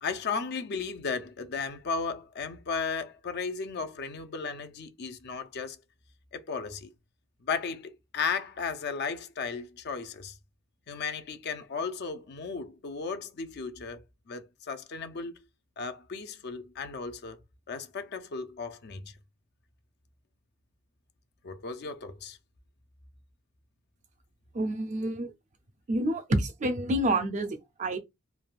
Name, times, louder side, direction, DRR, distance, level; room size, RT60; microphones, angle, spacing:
voice 1, 0.0-5.8 6.3-6.9 7.5-10.4 10.9-15.3 15.8-17.4 17.7-19.1 21.4-22.4, left 5 dB, 50° left, 0.4 m, -35 dB
voice 2, 24.5-25.3 25.9-28.0, right 1 dB, 35° right, 0.4 m, -28 dB
3.3 x 2.2 x 2.4 m
head